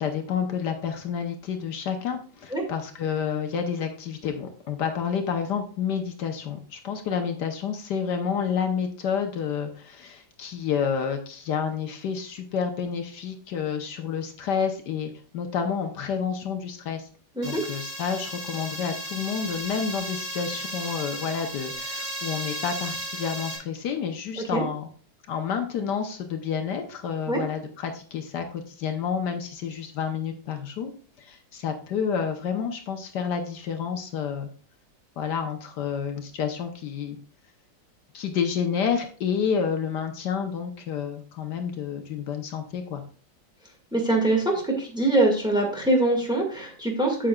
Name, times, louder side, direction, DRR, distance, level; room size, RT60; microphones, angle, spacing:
voice 1, 0.0-17.1 17.4-24.9 25.3-30.9 31.2-34.5 35.2-37.2 38.1-43.0, left 7 dB, 70° left, 5 dB, 1.4 m, -29 dB
sound 1, 17.4-23.6, right 1 dB, 55° right, 3.9 m, -35 dB
voice 2, 43.9-47.3, right 2 dB, 5° right, 0 dB, 1.6 m, -23 dB
8.6 x 7.6 x 2.3 m, 0.42 s
omnidirectional pair, 1.9 m